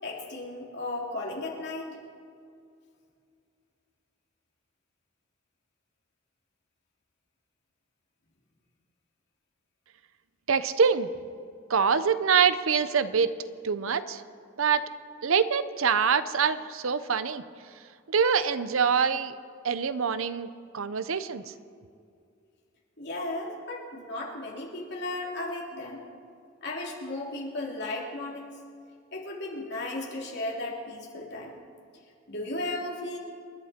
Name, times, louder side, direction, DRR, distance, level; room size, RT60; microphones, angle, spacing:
voice 1, 0.0-2.0 23.0-26.0 26.6-28.5 29.1-31.6 32.3-33.2, left 2 dB, 50° left, -2 dB, 3.2 m, -35 dB
voice 2, 10.5-11.1 11.7-13.3 13.6-14.2 14.6-14.9 15.2-17.4 18.1-19.3 19.6-20.5 20.7-21.4, right 6 dB, 70° right, 13 dB, 0.7 m, -25 dB
27.5 x 11.0 x 4.4 m, 2.3 s
head